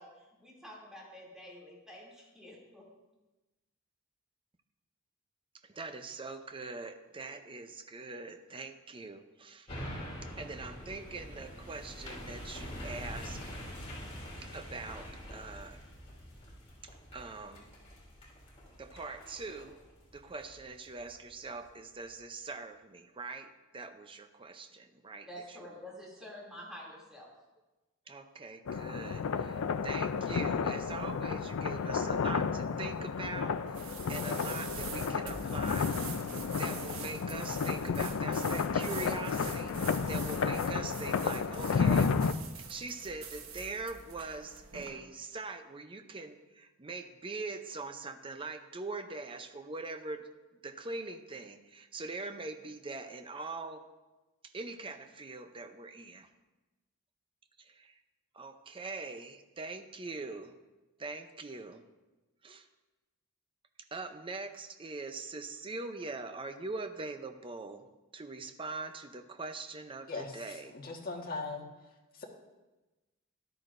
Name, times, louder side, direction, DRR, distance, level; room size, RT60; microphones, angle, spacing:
voice 1, 0.0-2.8 25.3-27.3, equal, 5° right, -5 dB, 2.7 m, -48 dB
voice 2, 5.6-9.7 10.4-13.5 14.4-15.8 16.8-17.7 18.8-19.8 20.1-25.6 28.1-35.9 36.6-39.8 40.1-42.1 42.7-50.3 50.6-53.8 54.4-56.3 57.6-58.0 58.3-60.5 61.0-61.8 62.4-62.7 63.9-67.8 68.1-70.7, right 3 dB, 25° right, 7 dB, 0.6 m, -42 dB
sound 1, 9.7-21.1 21.6-21.7, equal, 30° left, 2.9 m, -45 dB
sound 2, 28.7-42.3, left 5 dB, 80° left, 0.4 m, -32 dB
sound 3, 33.7-44.9, right 6 dB, 90° right, 1.2 m, -45 dB
voice 3, 70.7-71.7 72.2-72.3, left 3 dB, 45° left, 0 dB, 1.5 m, -38 dB
13.5 x 11.5 x 2.6 m, 1.1 s
head